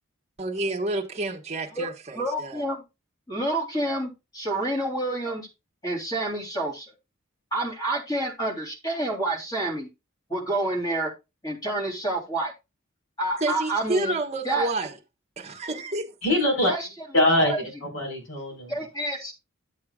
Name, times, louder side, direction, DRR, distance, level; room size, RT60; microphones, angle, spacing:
voice 1, 0.4-2.6 13.4-14.9 15.4-16.1, right 2 dB, 30° right, 1.3 m, -29 dB
voice 2, 1.7-2.8 3.3-5.5 5.8-6.9 7.5-9.9 10.3-11.1 11.4-12.5 13.2-14.2 14.4-14.7 16.7-16.9 17.4-17.6 18.7-19.3, right 2 dB, 20° left, 3.1 m, -28 dB
voice 3, 16.2-16.7 17.1-18.8, left 1 dB, 65° left, 4.5 m, -23 dB
12.0 x 7.6 x 2.3 m
head